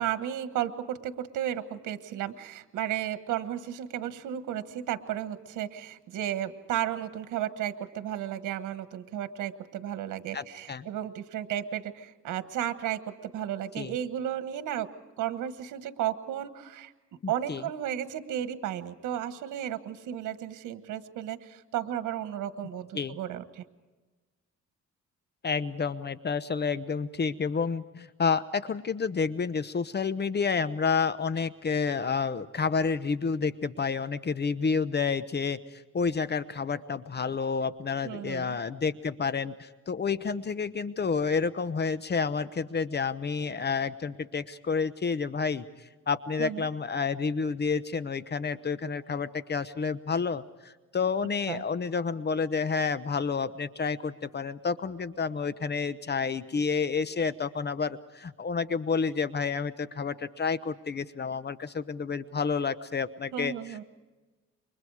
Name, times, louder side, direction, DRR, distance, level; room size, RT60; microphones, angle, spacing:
voice 1, 0.0-14.9 15.2-16.9 17.3-23.6 38.0-38.6 46.4-46.7 51.5-51.6 63.3-63.8, right 11 dB, 85° right, 10 dB, 1.4 m, -34 dB
voice 2, 10.3-10.9 13.8-14.0 17.2-17.6 22.9-23.2 25.4-63.8, left 5 dB, 35° left, 14 dB, 0.9 m, -30 dB
29.0 x 24.0 x 4.9 m, 1.2 s
cardioid pair, 90°, 30 cm